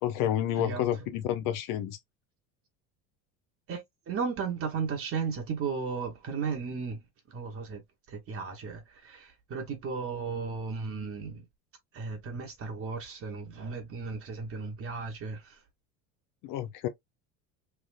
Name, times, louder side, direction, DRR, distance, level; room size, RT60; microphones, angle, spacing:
voice 1, 0.0-2.0 16.4-16.9, left 11 dB, 60° left, 0.6 m, -30 dB
voice 2, 3.7-7.0 7.3-7.8 8.1-11.4 11.9-15.6, right 5 dB, 35° right, 0.9 m, -35 dB
3.3 x 2.7 x 2.4 m
supercardioid pair, 120°, 37 cm